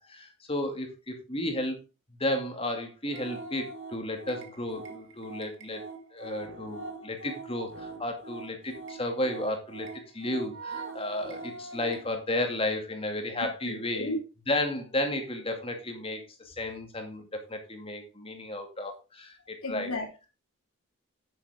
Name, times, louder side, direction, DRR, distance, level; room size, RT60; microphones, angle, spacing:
voice 1, 0.0-1.8 2.2-5.8 6.1-9.9 10.1-14.1 14.5-19.3 19.7-19.9, left 1 dB, 25° left, 2.3 m, -33 dB
sound 1, 3.1-12.1, right 3 dB, 55° right, 1.9 m, -42 dB
voice 2, 13.4-14.2 19.6-20.3, left 2 dB, 90° left, 3.7 m, -34 dB
9.6 x 9.0 x 3.6 m
head